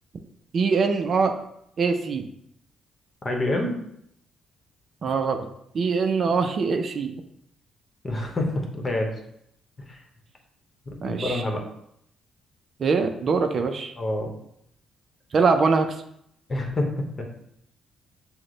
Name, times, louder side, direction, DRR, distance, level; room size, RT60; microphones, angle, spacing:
voice 1, 0.5-1.3 1.8-2.3 5.0-5.5 5.7-7.1 11.0-11.4 12.8-13.9 15.3-15.9, right 4 dB, 50° right, 6 dB, 0.4 m, -23 dB
voice 2, 3.2-3.8 8.0-9.1 9.9-10.0 11.0-11.6 14.0-14.3 16.5-16.9 17.2-17.3, left 1 dB, 30° left, 1 dB, 0.9 m, -26 dB
5.9 x 2.1 x 3.8 m, 0.74 s
cardioid pair, 90°, 0 cm